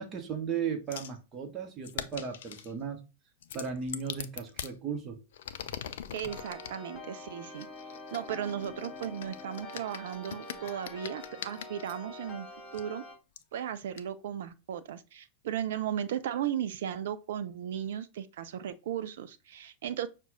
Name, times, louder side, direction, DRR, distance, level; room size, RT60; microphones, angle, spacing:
voice 1, 0.0-3.0 3.5-5.2, right 6 dB, 25° right, 0.9 m, -36 dB
sound 1, 0.9-1.2 1.8-2.7 3.4-4.7 5.3-6.8 7.6-11.9 12.7-12.8 13.4-13.5 14.0-14.1, left 9 dB, 60° left, 0.3 m, -42 dB
voice 2, 6.1-7.7 8.1-12.5 12.7-13.0 13.5-20.1, right 10 dB, 60° right, 0.3 m, -36 dB
sound 2, 6.2-13.1, left 2 dB, 25° left, 1.6 m, -46 dB
5.8 x 2.2 x 3.7 m
figure-of-eight pair, 90°, 0 cm